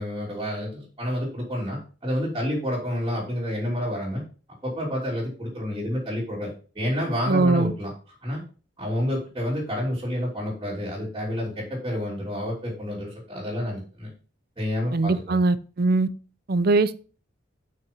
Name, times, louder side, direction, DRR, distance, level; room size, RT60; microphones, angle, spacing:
voice 1, 0.0-4.2 4.6-7.9 8.2-8.4 8.8-14.1 14.6-15.4, equal, 20° right, 3.2 m, -29 dB
voice 2, 7.3-7.7 14.9-16.1 16.5-16.9, right 3 dB, 50° right, 0.6 m, -21 dB
7.7 x 5.9 x 5.4 m
head